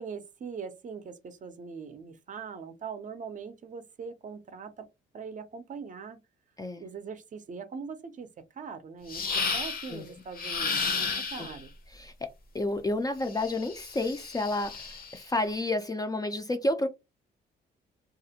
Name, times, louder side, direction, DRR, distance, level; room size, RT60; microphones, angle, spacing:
voice 1, 0.0-4.9 5.1-6.2 6.8-8.3 8.5-11.7, right 5 dB, 40° right, 0.5 m, -41 dB
sound 1, 9.1-10.0 10.4-11.6 13.3-15.2, left 5 dB, 50° left, 0.7 m, -32 dB
voice 2, 11.9-12.3 12.5-16.9, left 2 dB, 20° left, 0.3 m, -30 dB
2.4 x 2.0 x 2.7 m
cardioid pair, 90°, 20 cm